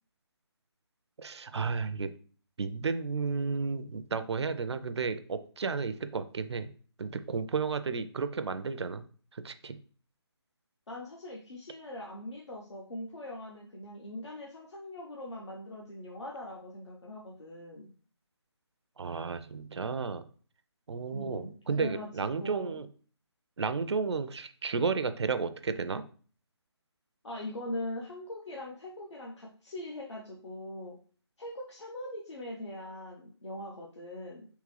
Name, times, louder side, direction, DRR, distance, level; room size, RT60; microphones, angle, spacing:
voice 1, 1.2-2.1 2.6-6.7 7.0-9.0 9.3-9.8 19.0-20.3 20.9-22.9 23.6-26.0, right 5 dB, 70° right, 11 dB, 0.4 m, -32 dB
voice 2, 10.9-17.9 21.1-22.8 27.2-31.0 31.4-34.5, left 1 dB, 80° left, -3 dB, 0.9 m, -41 dB
3.6 x 3.1 x 3.2 m, 0.43 s
figure-of-eight pair, 170°, 15 cm